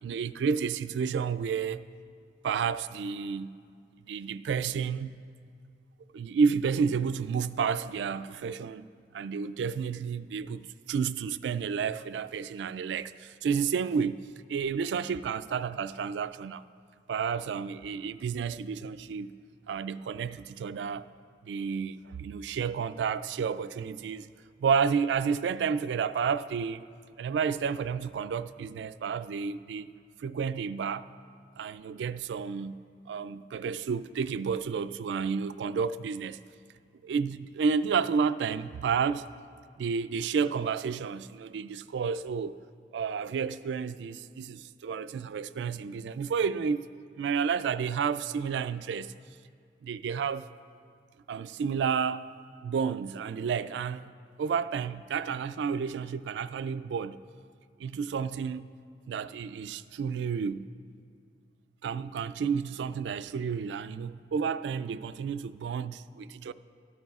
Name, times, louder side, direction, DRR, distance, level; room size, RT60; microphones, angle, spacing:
voice 1, 0.0-1.8 2.4-3.6 4.1-5.2 6.1-8.9 9.1-14.2 14.5-16.6 17.1-19.3 19.7-21.1 21.4-24.3 24.6-26.9 27.2-29.9 30.2-31.1 31.6-32.8 33.1-36.4 37.0-39.3 39.8-42.6 42.9-46.9 47.1-49.1 49.8-50.5 51.3-52.3 52.6-54.0 54.4-57.2 57.8-58.7 59.1-60.7 61.8-66.5, right 6 dB, 80° right, 0.3 m, -31 dB
13.0 x 13.0 x 2.4 m
head